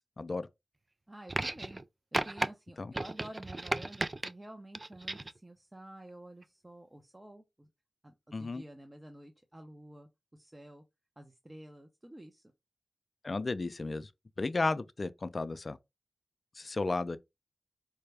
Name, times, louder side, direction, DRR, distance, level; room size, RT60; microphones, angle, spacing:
voice 1, 0.2-0.5 2.8-2.9 8.3-8.6 13.2-14.1 14.4-15.8 16.6-17.2, left 3 dB, 55° left, 0.4 m, -33 dB
voice 2, 1.1-1.8 2.2-7.7 8.0-10.8 11.2-12.4, right 1 dB, 25° right, 0.8 m, -50 dB
sound 1, 1.3-1.8 2.1-2.5 2.9-4.3 4.8-5.4 6.4-6.5, right 2 dB, 40° right, 0.3 m, -34 dB
4.8 x 2.2 x 3.3 m
cardioid pair, 40°, 0 cm